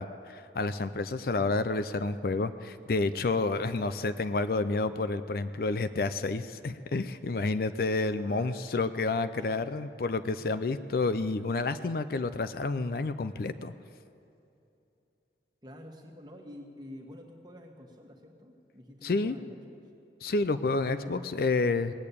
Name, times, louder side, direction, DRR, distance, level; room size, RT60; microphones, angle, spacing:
voice 1, 0.0-13.7 19.0-19.4 20.2-21.9, left 3 dB, 55° left, 12 dB, 0.4 m, -29 dB
voice 2, 8.2-9.6 15.6-19.8 20.8-21.7, left 1 dB, 25° right, 1 dB, 1.6 m, -49 dB
18.5 x 8.7 x 8.5 m, 2.7 s
head